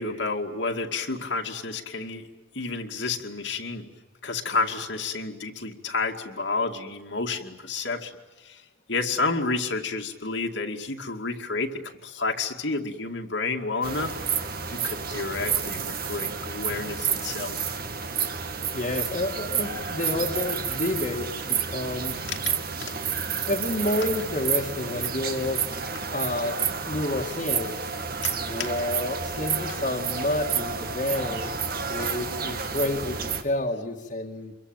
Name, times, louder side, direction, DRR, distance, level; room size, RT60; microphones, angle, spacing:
voice 1, 0.0-2.3 2.5-3.9 4.2-8.1 8.4-8.6 8.9-14.1 14.7-17.8 22.3-22.9 28.2-28.7, left 3 dB, 65° left, 2 dB, 2.4 m, -30 dB
sound 1, 13.8-33.4, right 6 dB, 50° right, 2.2 m, -30 dB
voice 2, 18.7-22.2 23.4-25.6 26.1-26.6 26.9-27.8 28.3-31.5 31.9-34.6, left 1 dB, 40° left, 1 dB, 2.1 m, -29 dB
28.0 x 23.0 x 9.1 m, 1.1 s
head